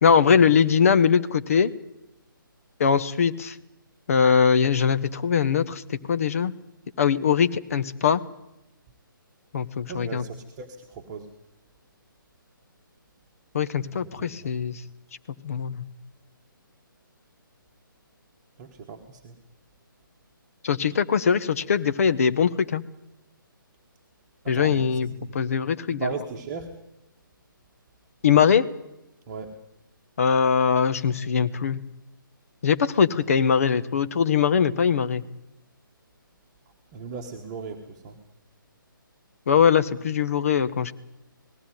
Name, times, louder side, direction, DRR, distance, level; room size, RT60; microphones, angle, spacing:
voice 1, 0.0-1.7 2.8-3.6 4.1-6.5 7.0-8.2 9.5-10.2 13.5-14.8 15.4-15.8 20.6-22.8 24.5-26.1 28.2-28.6 30.2-31.8 32.6-35.2 39.5-40.9, left 7 dB, 40° left, 11 dB, 1.1 m, -21 dB
voice 2, 9.9-11.3 14.2-14.5 18.6-19.4 24.4-25.4 25.9-26.7 29.3-29.5 36.9-38.2, right 5 dB, 20° right, 2 dB, 1.4 m, -37 dB
19.0 x 15.5 x 9.5 m, 0.89 s
figure-of-eight pair, 140°, 12 cm